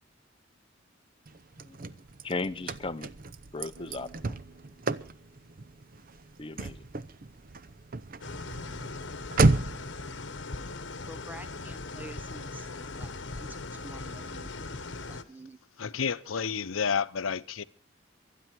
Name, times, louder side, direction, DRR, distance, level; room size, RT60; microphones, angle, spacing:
Car / Slam, 1.3-9.9, right 3 dB, 45° right, 0.7 m, -32 dB
voice 1, 2.2-3.1 3.5-4.4 6.4-6.9, left 3 dB, 25° left, 0.7 m, -36 dB
sound 1, 3.7-9.1, right 3 dB, 80° right, 3.4 m, -60 dB
sound 2, 8.2-15.2, left 3 dB, 60° left, 1.2 m, -39 dB
voice 2, 11.0-12.7 13.0-14.5 15.1-15.6, right 1 dB, 10° right, 0.7 m, -48 dB
voice 3, 15.8-17.6, left 6 dB, 85° left, 0.7 m, -30 dB
25.0 x 9.9 x 4.6 m
head